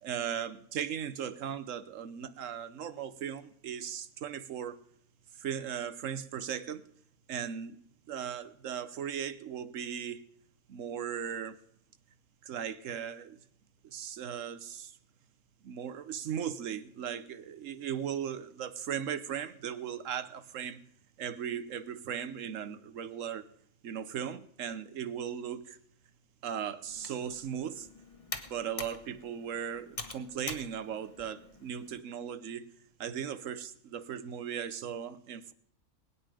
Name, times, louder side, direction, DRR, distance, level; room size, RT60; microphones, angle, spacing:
voice 1, 0.0-4.8 5.3-6.9 7.3-7.8 8.1-10.2 10.7-11.6 12.4-13.4 13.8-15.0 15.6-20.8 21.2-23.4 23.8-25.8 26.4-27.9 28.5-32.7 33.0-35.5, right 8 dB, 65° right, 1.2 m, -37 dB
Computer keyboard, 26.9-32.0, left 3 dB, 25° left, 1.0 m, -45 dB
20.0 x 9.6 x 5.0 m
omnidirectional pair, 1.5 m